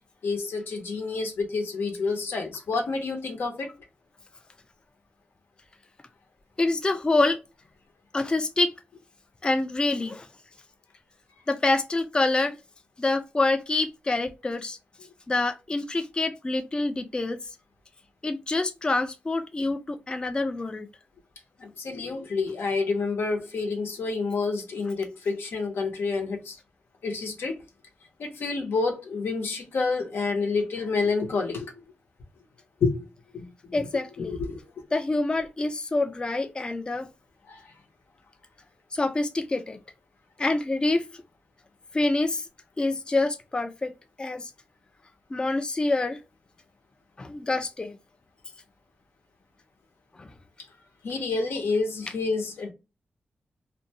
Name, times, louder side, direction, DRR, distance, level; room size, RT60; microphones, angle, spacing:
voice 1, 0.2-3.7 21.6-26.5 27.0-27.6 28.2-31.7 32.8-33.0 33.3-33.5 34.2-34.6 37.5-37.6 51.0-52.7, left 4 dB, 90° left, 0.8 m, -28 dB
voice 2, 6.6-7.4 8.1-8.7 9.4-10.3 11.5-12.6 13.0-14.8 15.3-17.4 18.2-20.9 33.7-34.4 34.9-37.1 38.9-39.8 40.4-41.0 41.9-42.5 42.8-43.9 44.2-44.5 45.3-46.2 47.2-48.0 50.2-50.3, left 2 dB, 25° left, 0.3 m, -26 dB
2.6 x 2.2 x 2.7 m
wide cardioid pair, 110°, 4 cm